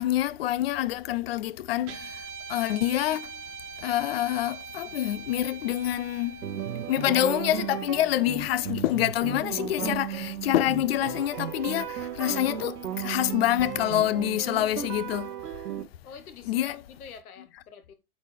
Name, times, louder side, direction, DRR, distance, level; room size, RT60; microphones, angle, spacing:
voice 1, 0.0-2.2 2.5-3.3 3.8-6.5 6.9-15.3 16.5-16.8, left 13 dB, 45° left, 0.4 m, -26 dB
Guitar, 1.8-10.3, right 6 dB, 30° right, 1.4 m, -44 dB
sound 1, 6.4-15.8, right 9 dB, 85° right, 1.2 m, -35 dB
voice 2, 16.0-17.9, left 6 dB, 75° left, 1.5 m, -46 dB
8.5 x 4.2 x 3.3 m
hypercardioid pair, 130°, 45 cm